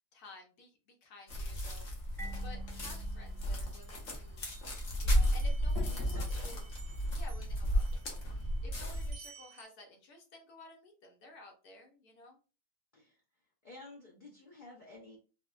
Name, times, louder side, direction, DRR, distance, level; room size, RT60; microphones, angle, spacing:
voice 1, 0.1-4.4 5.0-6.7 7.1-12.4, left 2 dB, 80° left, 3 dB, 1.4 m, -54 dB
sound 1, 1.3-9.1, equal, 60° left, 1.2 m, -33 dB
Marimba xylophone, 2.2-4.8, right 3 dB, ahead, 0.5 m, -52 dB
sound 2, 2.4-3.4 3.8-9.7, right 5 dB, 70° right, 1.2 m, -58 dB
voice 2, 5.9-6.5 12.9-13.1 13.6-15.2, left 2 dB, 40° left, -3 dB, 0.7 m, -52 dB
4.2 x 2.1 x 2.4 m, 0.34 s
omnidirectional pair, 1.6 m